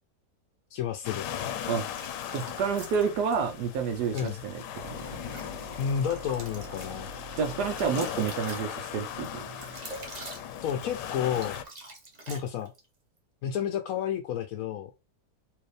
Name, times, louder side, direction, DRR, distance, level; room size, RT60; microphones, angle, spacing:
voice 1, 0.7-1.3 4.1-4.4 5.8-7.1 10.6-11.6 12.3-12.7 13.4-14.9, left 8 dB, 70° left, 0.9 m, -31 dB
sound 1, 1.0-11.6, left 9 dB, 85° left, 1.2 m, -38 dB
sound 2, 1.7-3.4 4.0-4.3 4.8-12.9, right 2 dB, 35° right, 0.8 m, -45 dB
voice 2, 2.3-5.0 7.4-9.6, right 6 dB, 80° right, 1.2 m, -29 dB
sound 3, 4.8-9.3, left 1 dB, 55° right, 1.7 m, -45 dB
4.6 x 2.7 x 3.2 m
omnidirectional pair, 1.8 m